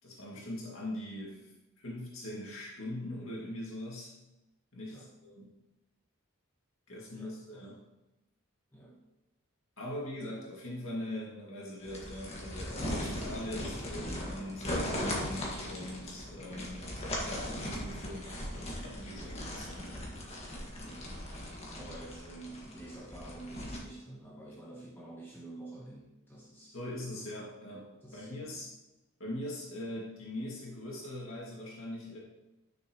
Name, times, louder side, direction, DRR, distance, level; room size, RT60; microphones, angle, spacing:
voice 1, 0.0-4.1 4.7-5.5 6.9-7.8 9.8-16.9 17.3-20.1 20.8-21.2 26.7-28.7 29.2-32.2, left 1 dB, 65° left, -4 dB, 2.2 m, -41 dB
voice 2, 7.1-7.7 8.7-9.0 9.8-10.1 19.1-19.5 20.8-21.0 21.7-26.8 28.0-28.6, right 2 dB, 10° left, -4 dB, 1.2 m, -49 dB
sound 1, 11.8-23.8, left 1 dB, 30° left, 1.7 m, -38 dB
11.0 x 6.4 x 3.1 m, 0.97 s
head